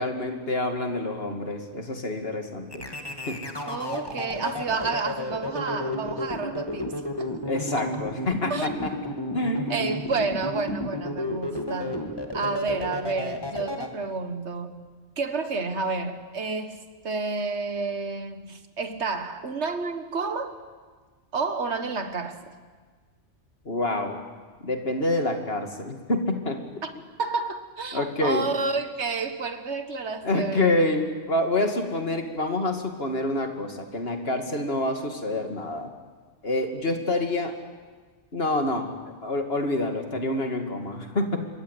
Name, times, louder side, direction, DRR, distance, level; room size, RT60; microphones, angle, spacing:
voice 1, 0.0-2.9 3.3-3.4 7.5-8.9 9.3-9.8 23.7-24.2 24.6-26.6 27.9-28.5 30.2-35.9 36.4-37.5 38.3-41.5, left 2 dB, 50° left, 2.8 m, -27 dB
sound 1, 2.7-13.9, left 1 dB, 20° left, 2.2 m, -32 dB
voice 2, 3.7-7.3 7.8-8.0 8.5-8.7 9.7-12.0 12.3-14.8 15.2-20.5 21.3-22.5 26.8-30.8, right 4 dB, 60° right, 1.9 m, -30 dB
26.5 x 22.5 x 8.4 m
omnidirectional pair, 1.3 m